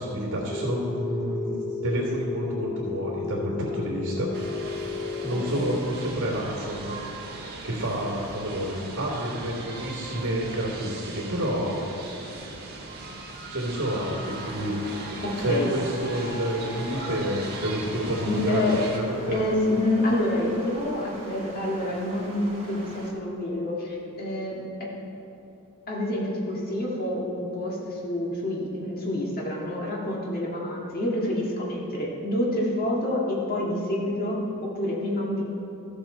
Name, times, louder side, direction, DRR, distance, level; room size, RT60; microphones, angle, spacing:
voice 1, 0.0-1.5 1.8-4.3 5.2-11.9 13.5-14.8 15.4-19.4, equal, 60° right, -7 dB, 2.4 m, -29 dB
Telephone, 0.5-5.5, left 4 dB, 20° left, 0.3 m, -33 dB
sound 1, 4.3-19.0, right 2 dB, 45° right, 1.6 m, -39 dB
Stream, 14.3-23.1, right 1 dB, 25° right, 2.2 m, -43 dB
voice 2, 15.2-15.7 18.3-18.8 19.3-24.9 25.9-35.4, left 1 dB, 40° left, -3 dB, 1.9 m, -27 dB
14.0 x 7.3 x 4.4 m, 3.0 s
head